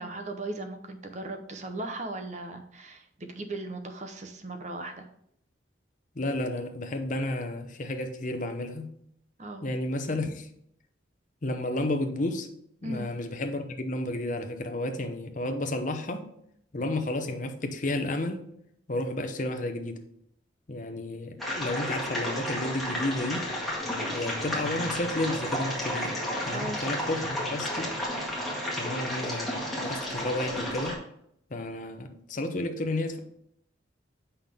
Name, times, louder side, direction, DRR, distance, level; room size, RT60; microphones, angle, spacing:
voice 1, 0.0-5.1 9.4-9.7 12.8-13.1 26.5-26.8, right 2 dB, 40° right, 0.8 m, -37 dB
voice 2, 6.2-9.0 9.6-10.5 11.4-12.5 12.8-16.3 16.7-18.4 18.9-20.0 20.7-23.5 24.1-26.2 26.4-27.9 28.7-31.0 31.5-33.2, left 1 dB, 40° left, 0.8 m, -32 dB
sound 1, 21.4-30.9, equal, ahead, 1.8 m, -32 dB
7.3 x 5.7 x 3.5 m
head